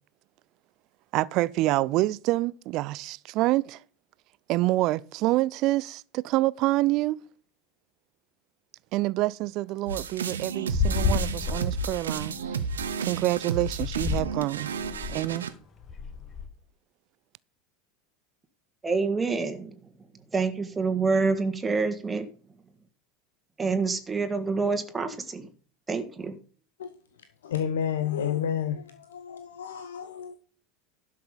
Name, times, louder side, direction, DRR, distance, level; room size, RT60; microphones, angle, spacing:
voice 1, 1.1-3.8 4.5-7.2 8.9-12.6 13.0-14.7 15.1-15.5, right 18 dB, 50° right, 0.4 m, -27 dB
sound 1, 9.9-15.5, right 6 dB, 75° right, 1.0 m, -32 dB
sound 2, 10.7-12.9 13.7-14.4 14.7-15.3 15.8-16.4, left 5 dB, 30° left, 1.7 m, -30 dB
voice 2, 18.8-19.8 20.3-22.3 23.6-25.5 25.9-26.4, right 4 dB, 20° right, 1.8 m, -27 dB
voice 3, 27.4-28.8 29.1-30.3, left 9 dB, 70° left, 0.9 m, -30 dB
11.5 x 6.7 x 5.2 m
figure-of-eight pair, 75°, 0 cm